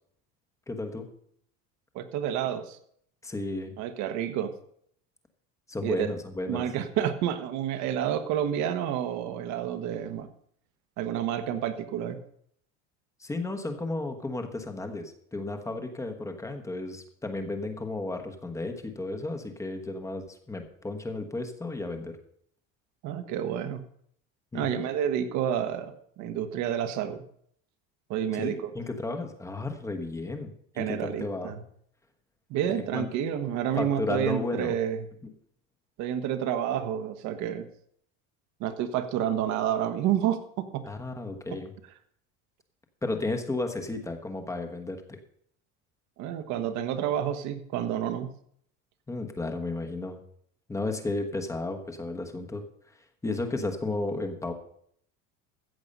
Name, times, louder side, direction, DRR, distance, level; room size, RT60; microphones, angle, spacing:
voice 1, 0.7-1.1 3.2-3.7 5.7-6.7 13.2-22.2 24.5-24.8 28.3-31.5 32.7-33.1 33.8-34.8 40.9-41.7 43.0-45.2 49.1-50.2 50.7-52.6 53.2-54.5, left 2 dB, 10° left, 6 dB, 1.2 m, -33 dB
voice 2, 1.9-2.8 3.8-4.5 5.8-6.1 6.5-10.3 11.0-12.2 23.0-23.8 24.5-27.2 28.1-28.5 30.8-31.6 32.5-35.0 36.0-37.7 38.6-40.8 46.2-48.3, right 10 dB, 60° right, 9 dB, 1.4 m, -29 dB
14.5 x 7.9 x 5.4 m, 0.67 s
cardioid pair, 150°, 33 cm